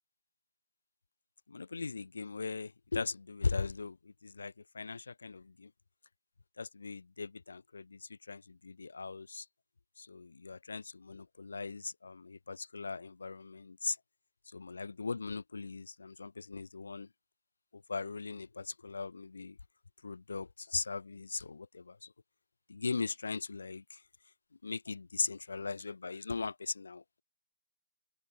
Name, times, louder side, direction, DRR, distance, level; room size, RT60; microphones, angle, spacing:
voice 1, 1.5-5.7 6.6-9.4 10.0-14.0 14.5-17.1 17.7-19.6 20.0-22.1 22.7-24.0 24.6-27.0, left 4 dB, 75° left, 4.3 m, -39 dB
open air
figure-of-eight pair, 140°, 0 cm